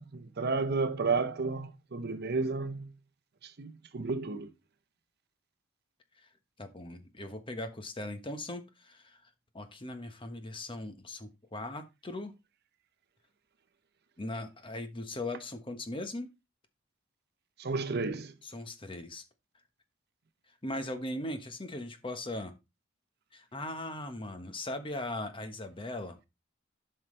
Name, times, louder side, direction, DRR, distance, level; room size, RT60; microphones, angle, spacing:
voice 1, 0.0-2.9 3.4-4.5 17.6-18.3, right 4 dB, 50° right, 0.7 m, -32 dB
voice 2, 6.6-9.2 9.5-12.3 14.2-16.3 17.9-18.0 18.4-19.2 20.6-22.5 23.3-26.2, left 1 dB, 25° left, 1.2 m, -39 dB
12.0 x 5.7 x 3.2 m
head